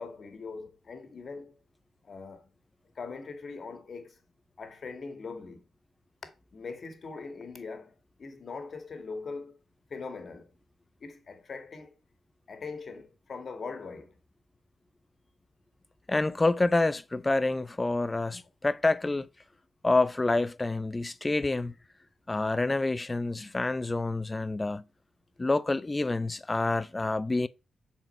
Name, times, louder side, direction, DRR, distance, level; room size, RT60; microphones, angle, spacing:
voice 1, 0.0-1.6 2.0-2.5 3.0-4.2 4.6-5.6 6.5-9.6 9.9-10.5 11.0-11.9 12.5-14.1, left 4 dB, 55° left, 1.9 m, -41 dB
voice 2, 16.1-19.3 19.8-21.7 22.3-24.8 25.4-27.5, left 2 dB, 25° left, 0.6 m, -27 dB
7.5 x 4.6 x 5.6 m
cardioid pair, 65°, 0 cm